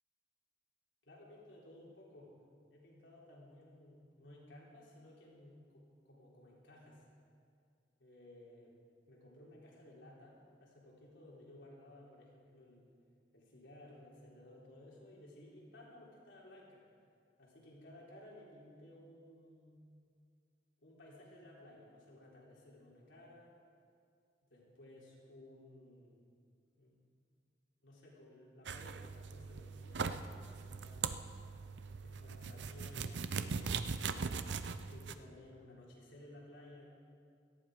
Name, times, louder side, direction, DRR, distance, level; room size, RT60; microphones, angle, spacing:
voice 1, 1.0-2.3 2.7-7.0 8.0-8.7 9.1-12.9 13.3-16.8 17.4-19.8 20.8-23.6 24.5-26.2 26.8-26.9 27.8-31.1 32.0-34.4 34.9-36.9, left 1 dB, 85° left, -4 dB, 3.9 m, -57 dB
sound 1, 28.7-35.1, right 5 dB, 70° right, 0.6 m, -40 dB
17.5 x 14.0 x 5.0 m, 2.2 s
head